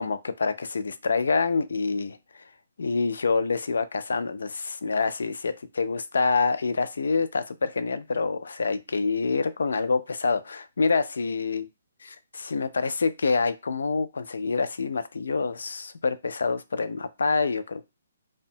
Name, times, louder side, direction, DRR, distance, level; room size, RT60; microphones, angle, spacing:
voice 1, 0.0-2.2 2.8-11.7 12.1-17.8, left 4 dB, 80° left, 0.3 m, -26 dB
2.7 x 2.1 x 2.6 m
hypercardioid pair, 180°, 0 cm